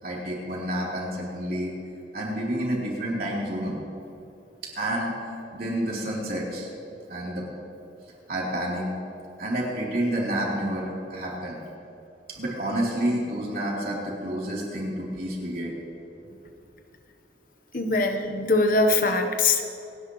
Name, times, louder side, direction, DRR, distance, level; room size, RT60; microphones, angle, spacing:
voice 1, 0.0-1.7 2.1-3.8 4.8-5.2 5.5-7.4 8.3-8.8 9.4-11.6 12.3-15.7, right 1 dB, 55° right, -5 dB, 3.6 m, -29 dB
voice 2, 17.7-19.6, left 3 dB, 50° left, 6 dB, 1.1 m, -22 dB
27.5 x 10.5 x 3.2 m, 2.8 s
head